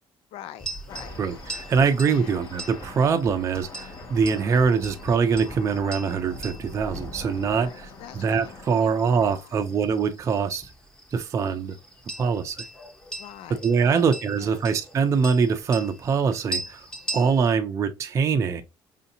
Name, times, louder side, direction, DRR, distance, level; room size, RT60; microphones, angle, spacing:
voice 1, 0.3-1.2 1.8-2.3 7.5-8.5 8.8-9.5 13.2-14.1 14.4-14.7 17.0-17.2, left 11 dB, 80° left, 0.4 m, -44 dB
sound 1, 0.6-17.5, right 2 dB, 10° left, 0.9 m, -40 dB
sound 2, 0.9-9.4, left 3 dB, 35° left, 0.8 m, -44 dB
voice 2, 1.2-7.9 8.1-10.7 11.1-11.8 12.2-12.7 13.6-16.9 17.1-18.6, right 5 dB, 30° right, 0.4 m, -23 dB
4.9 x 2.7 x 2.6 m
cardioid pair, 145°, 10 cm